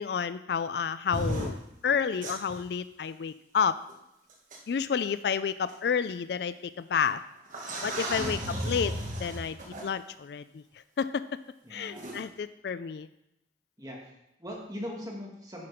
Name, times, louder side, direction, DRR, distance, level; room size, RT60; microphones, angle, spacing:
voice 1, 0.0-1.6 1.8-3.8 4.7-7.2 7.8-8.4 8.7-8.9 9.2-10.6 11.0-11.4 11.7-13.1, left 6 dB, 65° left, 14 dB, 0.3 m, -30 dB
sound 1, 1.1-1.5 2.2-2.6 3.9-4.0 4.5-4.6 5.7-5.8 7.0-7.1 7.5-9.9 12.0-12.2, right 1 dB, 45° right, 1.5 m, -34 dB
voice 2, 8.1-8.5 11.6-12.1 13.8-15.7, equal, 20° right, -2 dB, 2.0 m, -40 dB
10.0 x 5.9 x 5.0 m, 0.84 s
head